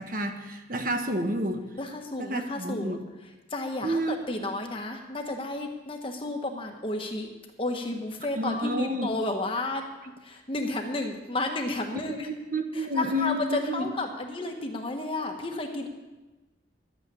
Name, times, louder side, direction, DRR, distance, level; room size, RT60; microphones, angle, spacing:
voice 1, 0.0-1.7 2.2-3.0 3.8-4.2 8.3-9.1 11.9-13.9, equal, 50° right, 5 dB, 1.4 m, -30 dB
voice 2, 1.8-3.0 3.5-7.3 7.6-9.8 10.2-12.2 12.8-13.3 13.7-15.9, left 2 dB, 30° left, 3 dB, 1.5 m, -32 dB
12.5 x 8.9 x 8.5 m, 1.1 s
head